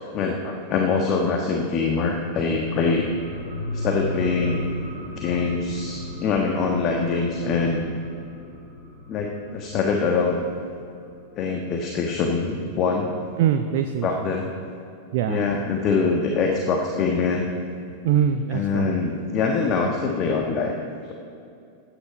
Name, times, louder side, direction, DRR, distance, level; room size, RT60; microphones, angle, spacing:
voice 1, 0.1-3.1 3.7-4.6 5.2-7.8 9.1-10.5 11.4-13.1 14.0-14.5 15.3-17.5 18.5-20.7 21.0-21.1, left 4 dB, 35° left, 1 dB, 1.3 m, -24 dB
sound 1, 2.6-11.7 12.1-12.2, left 1 dB, 60° left, 3.8 m, -35 dB
voice 2, 13.4-14.1 15.1-15.4 18.0-18.9, right 9 dB, 50° right, 8 dB, 0.6 m, -22 dB
16.5 x 10.5 x 5.2 m, 2.4 s
figure-of-eight pair, 90°, 0 cm